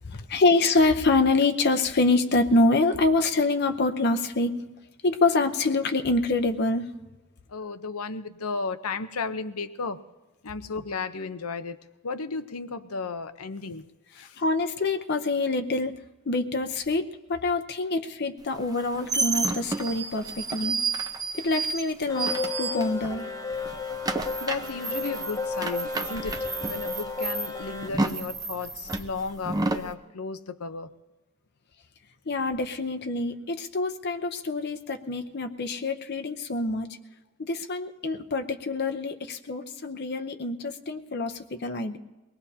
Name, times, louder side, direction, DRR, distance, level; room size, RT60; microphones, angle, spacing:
voice 1, 0.0-4.6 5.0-6.9 14.2-16.0 16.3-20.8 21.3-23.3 32.3-36.9 37.4-42.0, left 3 dB, 50° left, 5 dB, 0.8 m, -26 dB
voice 2, 7.5-10.0 10.4-11.8 12.0-13.8 14.2-14.3 24.4-30.9, left 4 dB, 85° left, 11 dB, 0.8 m, -34 dB
sound 1, 18.6-23.3 23.5-29.9, right 3 dB, 15° right, 0.7 m, -30 dB
sound 2, 22.1-27.9, left 4 dB, 15° left, 0.8 m, -33 dB
23.5 x 19.0 x 2.8 m, 1.1 s
head